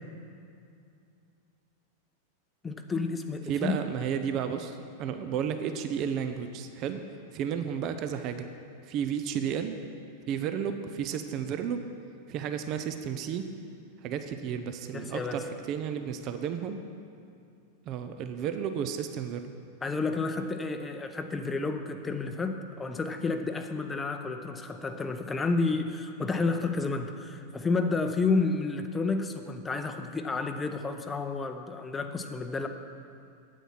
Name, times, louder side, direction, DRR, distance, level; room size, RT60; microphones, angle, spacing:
voice 1, 2.6-3.8 14.9-15.4 19.8-32.7, left 3 dB, 15° left, 7 dB, 0.7 m, -30 dB
voice 2, 3.5-7.0 7.3-8.5 8.9-9.7 10.3-11.8 12.3-13.5 14.0-16.8 17.8-19.5, right 8 dB, 40° right, 8 dB, 0.6 m, -32 dB
9.0 x 8.4 x 6.0 m, 2.5 s
figure-of-eight pair, 90°, 0 cm